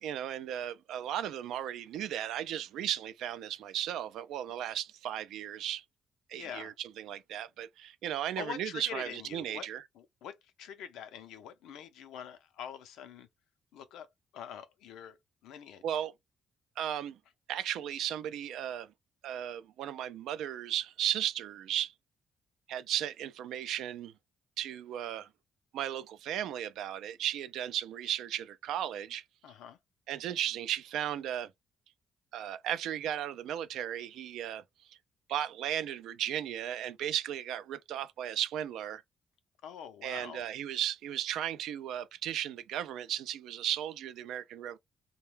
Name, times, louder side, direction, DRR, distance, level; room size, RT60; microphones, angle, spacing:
voice 1, 0.0-5.8 6.3-9.8 15.8-16.1 16.8-17.2 17.5-18.9 19.2-21.9 22.7-24.1 24.6-25.3 25.7-29.2 30.1-31.5 32.3-34.6 34.9-35.0 35.3-39.0 40.0-44.8, right 11 dB, 85° right, 0.3 m, -35 dB
voice 2, 6.3-6.7 8.1-9.7 9.9-13.3 13.7-14.1 14.3-15.2 15.4-16.0 29.4-29.8 39.6-40.5, left 8 dB, 85° left, 0.5 m, -45 dB
2.2 x 2.1 x 3.2 m
cardioid pair, 90°, 0 cm